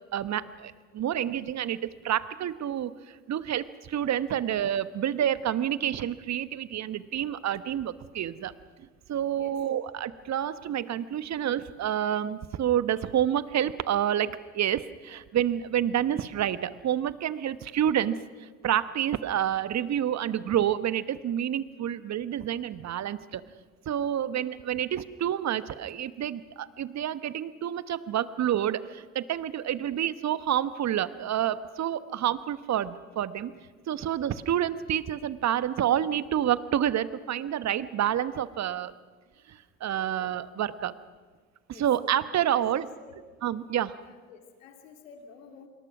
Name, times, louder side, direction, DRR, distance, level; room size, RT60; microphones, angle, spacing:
voice 1, 0.1-8.5 8.8-23.4 23.8-33.5 33.9-38.9 39.5-40.9 41.7-42.9 43.4-44.0, right 10 dB, 45° right, 15 dB, 1.1 m, -28 dB
voice 2, 42.5-43.2 44.0-45.7, left 6 dB, 75° left, 5 dB, 2.6 m, -51 dB
26.0 x 23.0 x 6.1 m, 1.4 s
figure-of-eight pair, 55°, 39 cm